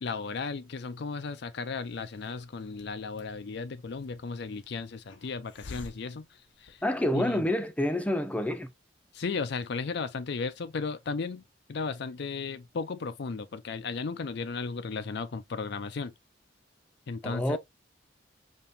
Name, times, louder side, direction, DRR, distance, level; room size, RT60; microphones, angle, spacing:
voice 1, 0.0-6.8 7.1-7.4 9.1-11.4 11.7-16.1 17.1-17.6, left 4 dB, 60° left, 0.5 m, -35 dB
Hiss, 1.7-7.2, left 3 dB, 80° left, 0.9 m, -51 dB
voice 2, 6.8-8.7 17.2-17.6, left 1 dB, 10° left, 0.6 m, -28 dB
5.2 x 2.9 x 2.7 m
head